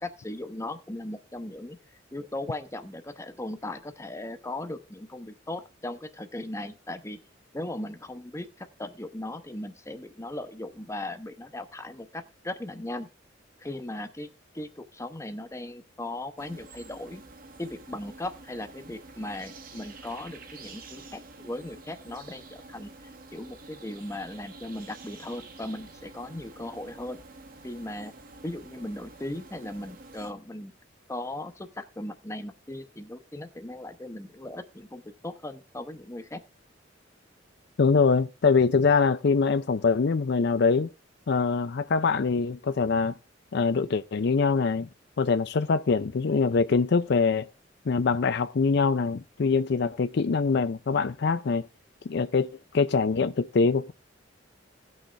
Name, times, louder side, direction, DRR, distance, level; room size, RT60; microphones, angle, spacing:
voice 1, 0.0-1.8 2.1-7.2 7.5-13.1 13.6-14.3 14.5-17.2 17.6-22.9 23.3-27.2 27.6-28.1 28.4-30.7 31.1-36.4, left 1 dB, 15° left, 0.9 m, -38 dB
sound 1, 16.4-30.3, right 3 dB, 50° right, 1.2 m, -48 dB
voice 2, 37.8-40.9 41.3-43.2 43.5-44.9 45.2-47.5 47.9-51.7 52.1-52.5 52.7-53.9, left 4 dB, 60° left, 0.5 m, -24 dB
17.5 x 6.4 x 3.3 m
head